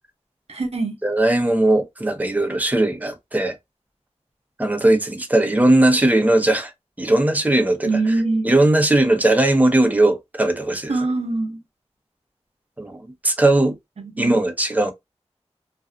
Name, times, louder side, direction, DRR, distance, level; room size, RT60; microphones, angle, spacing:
voice 1, 0.5-1.0 7.8-8.5 10.9-11.6 14.0-14.4, right 3 dB, 65° right, 0.7 m, -23 dB
voice 2, 1.0-3.5 4.6-6.7 7.0-8.1 8.4-11.0 12.8-13.8 14.2-14.9, right 1 dB, 15° right, 0.8 m, -18 dB
2.5 x 2.4 x 2.4 m
wide cardioid pair, 45°, 11 cm